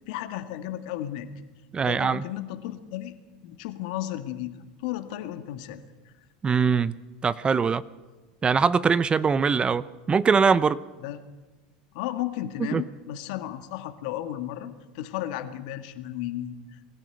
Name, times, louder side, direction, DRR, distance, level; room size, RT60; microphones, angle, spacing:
voice 1, 0.1-1.3 1.8-3.2 3.4-4.6 4.8-6.1 11.0-11.2 11.9-16.9, left 13 dB, 65° left, 8 dB, 1.8 m, -34 dB
voice 2, 1.7-2.2 6.4-7.0 7.2-7.8 8.4-10.8 12.7-12.8, right 5 dB, 25° right, 18 dB, 0.7 m, -22 dB
22.0 x 13.5 x 9.0 m, 1.3 s
hypercardioid pair, 90°, 4 cm